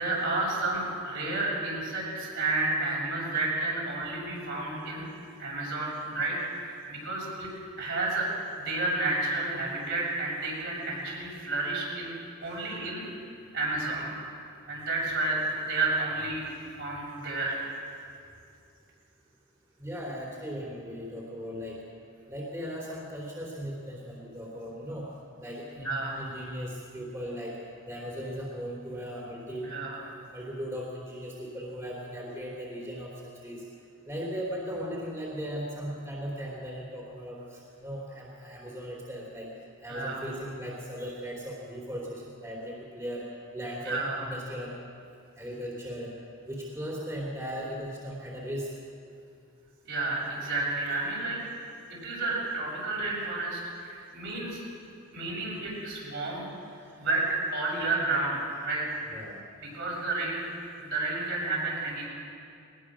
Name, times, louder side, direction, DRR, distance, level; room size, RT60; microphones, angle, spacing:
voice 1, 0.0-5.0 5.4-7.5 7.8-8.3 8.6-12.1 12.4-13.1 13.5-14.1 14.7-16.4 16.8-17.6 25.8-26.2 29.6-30.0 39.9-40.3 43.8-44.2 49.8-51.4 52.0-54.6 55.1-56.5 57.0-57.2 57.5-58.8 59.7-60.4 60.8-62.1, right 2 dB, 60° right, -4 dB, 7.0 m, -31 dB
voice 2, 12.4-12.7 19.8-21.8 22.3-25.1 25.4-27.6 27.9-29.7 30.3-33.6 34.1-39.5 39.8-43.2 43.5-44.7 45.4-46.1 46.4-48.7 50.9-51.0 59.1-59.4, equal, 15° right, -3 dB, 3.1 m, -38 dB
21.0 x 20.0 x 6.2 m, 2.5 s
head